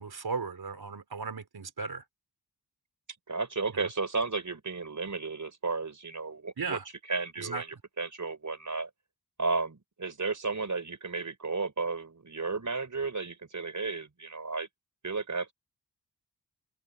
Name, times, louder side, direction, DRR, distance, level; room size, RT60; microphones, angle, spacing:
voice 1, 0.0-2.0 3.7-3.9 6.6-6.8 7.4-7.6, right 4 dB, 65° right, 4.3 m, -36 dB
voice 2, 3.3-6.8 7.1-8.9 9.4-14.7 15.0-15.5, right 4 dB, 45° right, 5.1 m, -33 dB
open air
wide cardioid pair, 75°, 40 cm